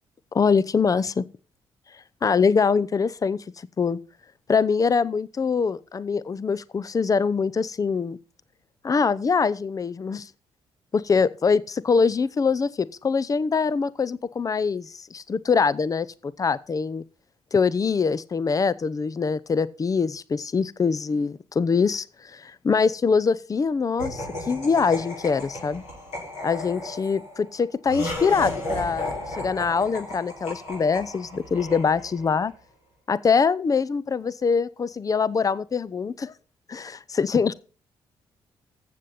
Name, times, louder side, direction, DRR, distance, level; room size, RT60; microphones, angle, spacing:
voice 1, 0.3-1.2 2.2-3.4 3.8-4.0 4.5-8.2 8.8-10.3 10.9-17.0 17.5-25.8 26.4-32.5 33.1-36.3 36.7-37.5, left 5 dB, 30° left, 0.7 m, -23 dB
Laughter, 24.0-32.4, left 1 dB, 65° left, 6.2 m, -34 dB
15.0 x 7.8 x 4.2 m
figure-of-eight pair, 40°, 12 cm